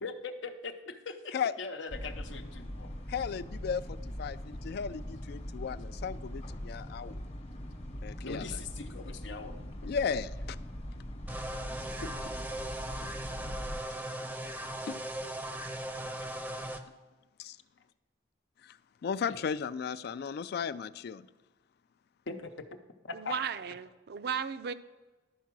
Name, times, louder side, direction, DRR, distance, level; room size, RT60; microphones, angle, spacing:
voice 1, 0.0-2.9 8.2-9.6 12.0-12.1 12.7-12.8 19.3-19.4 22.3-22.7 23.0-23.4, left 4 dB, 85° left, 7 dB, 0.7 m, -41 dB
sound 1, 1.9-13.8, equal, 35° left, 0.9 m, -41 dB
voice 2, 3.1-7.2 8.0-8.4 9.8-10.6 14.9-15.0 17.4-17.6 18.6-18.8 19.0-21.3, left 6 dB, 60° left, 16 dB, 0.3 m, -35 dB
sound 2, 11.3-16.8, right 1 dB, 10° right, 0.5 m, -38 dB
voice 3, 23.1-24.7, right 7 dB, 60° right, 12 dB, 0.4 m, -35 dB
11.5 x 4.6 x 6.0 m, 1.2 s
head